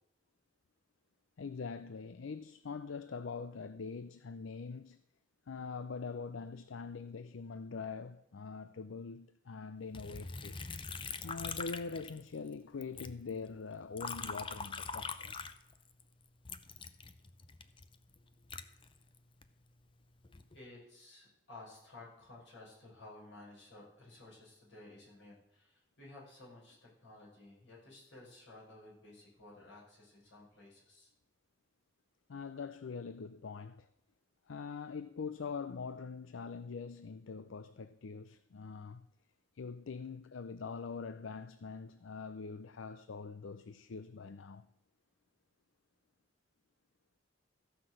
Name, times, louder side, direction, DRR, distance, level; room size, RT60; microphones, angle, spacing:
voice 1, 1.4-5.0 5.5-10.6 11.2-15.4 32.3-33.9 34.5-39.1 39.6-44.7, left 5 dB, 85° left, 0.5 m, -43 dB
Liquid, 9.9-12.5 12.8-16.0 16.4-19.5 20.0-20.6, left 5 dB, 25° left, 0.6 m, -43 dB
voice 2, 20.5-31.1, left 2 dB, 70° left, 6.1 m, -55 dB
14.5 x 5.8 x 7.7 m
head